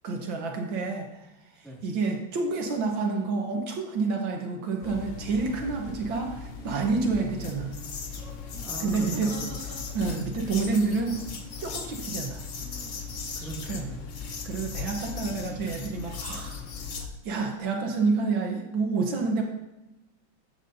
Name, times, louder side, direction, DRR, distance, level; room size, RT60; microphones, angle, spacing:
voice 1, 0.0-1.3 1.8-7.7 8.8-9.3 9.9-11.2 11.6-12.4 13.7-13.9 14.4-16.6 17.2-19.4, right 4 dB, 70° right, 2 dB, 1.8 m, -28 dB
sound 1, 3.0-3.3 4.6-5.5 6.6-7.1 8.5-10.2 10.9-11.4 12.6-13.1, right 3 dB, 50° right, 1.4 m, -47 dB
sound 2, 4.8-17.1, left 5 dB, 50° left, 0.9 m, -38 dB
voice 2, 8.6-9.8 13.4-14.3, right 1 dB, ahead, -4 dB, 1.8 m, -40 dB
14.0 x 8.3 x 2.7 m, 0.96 s
omnidirectional pair, 2.3 m